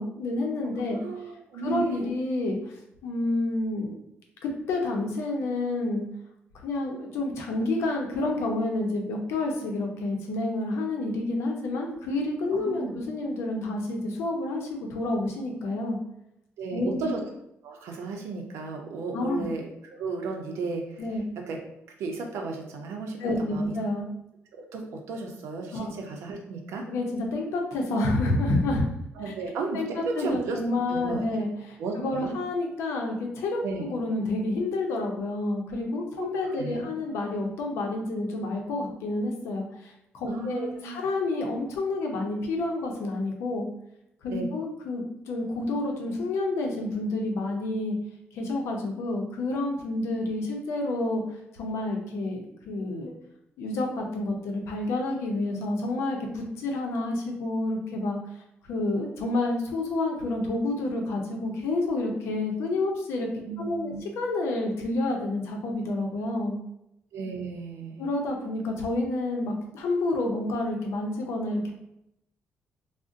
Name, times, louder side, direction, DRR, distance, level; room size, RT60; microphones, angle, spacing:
voice 1, 0.0-1.0 1.5-2.7 3.0-4.0 4.4-6.1 6.6-16.0 16.7-17.1 19.1-19.4 21.0-21.2 23.2-24.0 25.7-25.9 26.9-28.9 29.2-29.3 29.7-43.7 44.2-48.0 48.3-51.2 51.6-53.1 53.6-58.2 58.6-66.6 68.0-71.7, left 2 dB, 90° left, 1 dB, 0.6 m, -29 dB
voice 2, 0.8-2.1 12.6-13.0 16.6-17.2 17.6-19.6 19.9-21.0 21.5-21.6 22.0-23.7 24.5-26.9 29.2-30.6 30.9-31.3 31.8-32.3 33.6-33.8 36.2-36.3 36.6-36.9 40.3-41.0 44.3-44.5 63.5-64.0 67.1-68.0, right 4 dB, 90° right, 2 dB, 0.6 m, -34 dB
2.5 x 2.1 x 3.7 m, 0.81 s
cardioid pair, 115°, 4 cm